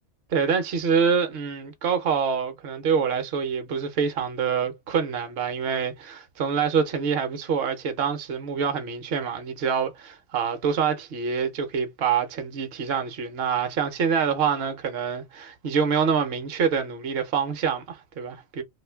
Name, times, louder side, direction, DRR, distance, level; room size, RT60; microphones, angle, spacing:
voice 1, 0.3-18.6, right 6 dB, 55° right, 0.8 m, -26 dB
2.6 x 2.4 x 3.3 m
omnidirectional pair, 1.4 m